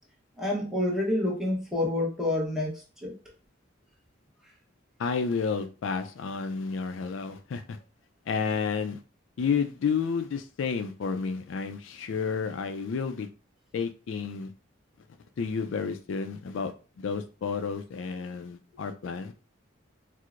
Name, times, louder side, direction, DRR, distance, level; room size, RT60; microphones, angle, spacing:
voice 1, 0.4-3.2, left 1 dB, ahead, -3 dB, 0.8 m, -28 dB
voice 2, 5.0-7.8 8.3-9.0 9.4-13.3 13.7-14.5 15.4-16.7 17.0-19.3, left 5 dB, 70° left, 8 dB, 0.3 m, -31 dB
4.4 x 2.0 x 2.5 m, 0.34 s
head